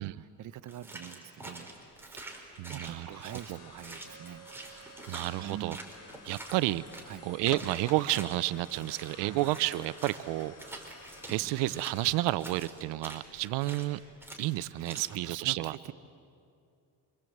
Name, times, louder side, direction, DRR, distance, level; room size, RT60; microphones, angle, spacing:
voice 1, 0.0-1.7 2.0-4.5 5.4-5.9 7.1-7.3 9.2-9.4 14.8-15.9, right 11 dB, 45° right, 11 dB, 0.9 m, -44 dB
sound 1, 0.7-7.2 7.5-11.4 11.7-13.9 14.2-14.5 14.8-15.2, right 2 dB, 5° right, 4.0 m, -46 dB
sound 2, 2.0-14.6, left 3 dB, 50° left, 3.6 m, -52 dB
voice 2, 2.6-3.6 4.8-5.8 6.2-6.9 7.2-10.9 11.3-14.0 14.4-15.8, right 17 dB, 80° right, 16 dB, 0.7 m, -31 dB
26.5 x 25.0 x 7.9 m, 2.5 s
cardioid pair, 120°, 42 cm